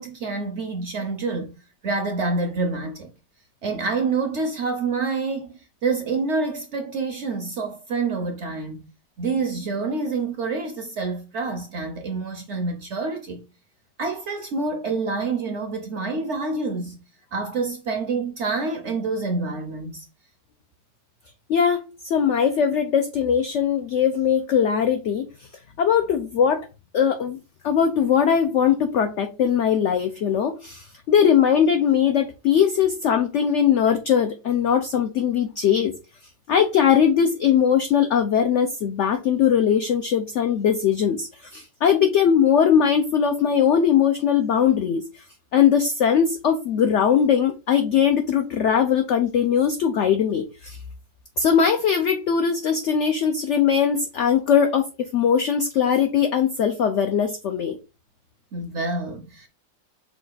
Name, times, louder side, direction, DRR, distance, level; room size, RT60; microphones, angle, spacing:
voice 1, 0.0-1.6 1.8-3.1 3.6-8.9 9.2-13.5 14.0-17.0 17.3-20.1 58.5-59.5, right 3 dB, 65° right, 0.7 m, -27 dB
voice 2, 21.5-25.2 25.8-26.6 26.9-27.4 27.6-35.9 36.5-45.0 45.5-50.8 51.4-57.8, left 8 dB, 85° left, 0.6 m, -20 dB
5.8 x 2.3 x 3.8 m
omnidirectional pair, 1.8 m